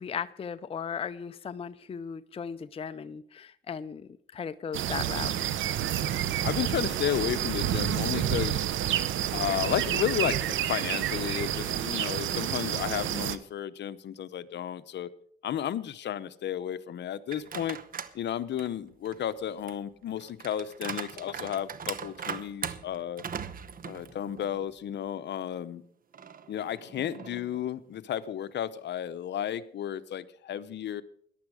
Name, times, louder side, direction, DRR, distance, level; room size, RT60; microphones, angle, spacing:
voice 1, 0.0-5.3, left 7 dB, 30° left, 12 dB, 0.5 m, -37 dB
sound 1, 4.7-13.4, right 11 dB, 75° right, 0.8 m, -29 dB
voice 2, 6.4-8.7 9.3-15.1 15.4-17.8 18.1-23.2 23.9-25.8 26.5-31.0, left 10 dB, 60° left, 14 dB, 0.8 m, -33 dB
sound 2, 17.3-18.2 18.6-24.7 25.1-25.2 26.1-27.6, right 7 dB, 45° right, 0.9 m, -40 dB
14.5 x 11.0 x 4.9 m, 0.64 s
cardioid pair, 90°, 20 cm